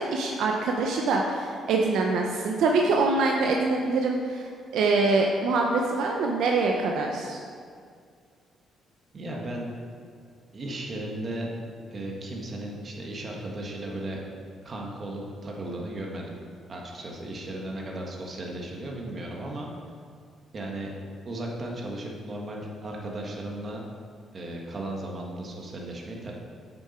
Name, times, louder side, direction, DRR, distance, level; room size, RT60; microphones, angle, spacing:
voice 1, 0.0-7.4, right 3 dB, 80° right, 1 dB, 0.7 m, -24 dB
voice 2, 9.1-9.7 10.5-11.5 11.9-14.2 14.6-16.3 16.7-19.7 20.5-20.9 21.2-23.8 24.3-26.3, right 1 dB, 40° right, -1 dB, 1.7 m, -35 dB
8.4 x 7.0 x 4.4 m, 2.2 s
cardioid pair, 90°, 0 cm